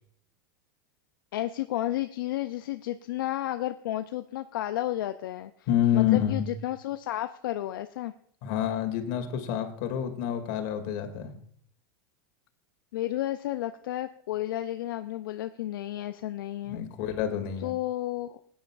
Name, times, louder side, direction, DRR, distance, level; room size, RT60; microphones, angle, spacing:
voice 1, 1.3-5.5 5.9-8.1 12.9-16.8 17.6-18.4, left 14 dB, 80° left, 9 dB, 0.5 m, -32 dB
voice 2, 5.7-6.5 8.4-11.3 16.7-17.7, left 10 dB, 60° left, 6 dB, 2.3 m, -27 dB
17.0 x 9.5 x 2.4 m, 0.62 s
supercardioid pair, 120°, 11 cm